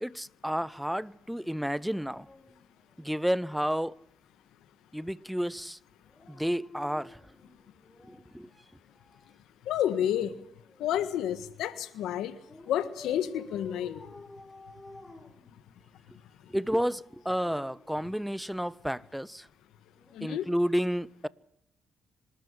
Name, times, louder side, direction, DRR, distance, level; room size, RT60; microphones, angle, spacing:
voice 1, 0.0-2.3 3.0-3.9 4.9-5.8 6.3-7.2 8.1-8.5 16.5-19.5 20.2-21.3, equal, ahead, 0.7 m, -31 dB
Dog, 1.7-3.6 6.0-8.4 9.7-11.3 12.5-16.0 17.0-18.7 19.9-20.1, left 2 dB, 15° left, 3.9 m, -52 dB
voice 2, 9.7-10.3 10.8-12.3 12.7-14.0 20.1-20.4, left 10 dB, 85° left, 1.5 m, -30 dB
25.5 x 13.0 x 9.6 m
cardioid pair, 90°, 0 cm